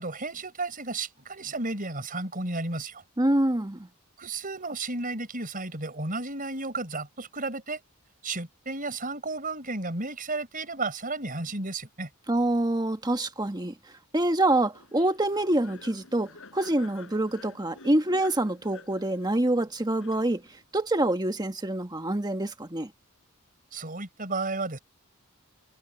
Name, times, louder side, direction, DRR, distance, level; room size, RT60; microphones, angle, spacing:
voice 1, 0.0-3.0 4.2-7.8 8.2-12.1 23.7-24.8, right 3 dB, 40° right, 5.4 m, -33 dB
voice 2, 3.2-3.9 12.3-13.7 14.1-20.4 20.7-22.9, right 1 dB, 20° right, 1.4 m, -26 dB
Laughter, 14.7-20.6, left 3 dB, 60° left, 7.0 m, -50 dB
head